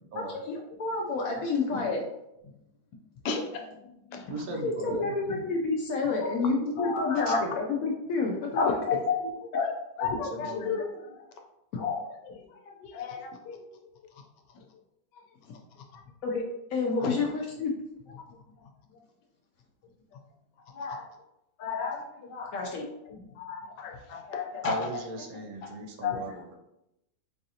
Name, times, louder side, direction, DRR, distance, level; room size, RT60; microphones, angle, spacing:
voice 1, 0.1-2.1 4.6-8.8 16.2-16.4 16.7-17.7 22.5-22.9, left 3 dB, 70° left, 0 dB, 0.8 m, -29 dB
voice 2, 3.2-3.7 4.1-4.3 5.3-5.4 6.3-6.5 6.8-7.4 8.5-11.1 11.8-12.0 12.2-12.4 12.7-13.6 15.9-16.0 17.0-17.2 20.7-21.1 21.6-22.5 23.1-24.8 25.6-25.7 26.0-26.2, left 5 dB, 90° left, 3 dB, 1.3 m, -32 dB
voice 3, 4.3-5.2 7.3-7.4 10.0-10.8 24.6-26.6, right 2 dB, 65° right, 1 dB, 1.0 m, -38 dB
4.7 x 2.5 x 2.7 m, 0.86 s
omnidirectional pair, 1.9 m